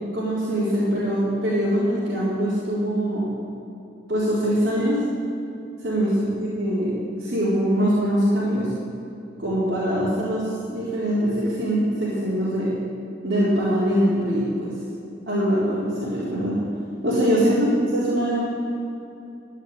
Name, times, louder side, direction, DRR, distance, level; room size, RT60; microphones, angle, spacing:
voice 1, 0.1-3.3 4.1-5.1 5.8-6.9 7.2-8.7 9.4-12.7 13.2-14.7 15.3-16.6 17.0-18.5, equal, 55° right, -11 dB, 4.3 m, -23 dB
14.5 x 9.1 x 9.8 m, 2.7 s
head